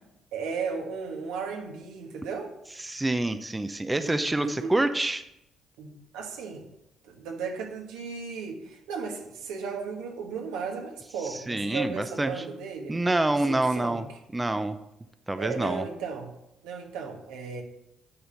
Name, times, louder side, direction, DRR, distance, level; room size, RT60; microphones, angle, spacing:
voice 1, 0.3-2.5 3.9-4.7 5.8-6.7 7.0-13.0 13.5-14.0 15.3-16.3 16.6-17.6, right 5 dB, 90° right, 2 dB, 1.5 m, -35 dB
voice 2, 2.8-5.2 11.3-12.3 12.9-14.0 14.3-14.8 15.3-15.8, right 2 dB, 15° right, 10 dB, 0.6 m, -27 dB
9.5 x 4.2 x 6.7 m, 0.82 s
supercardioid pair, 75°, 0 cm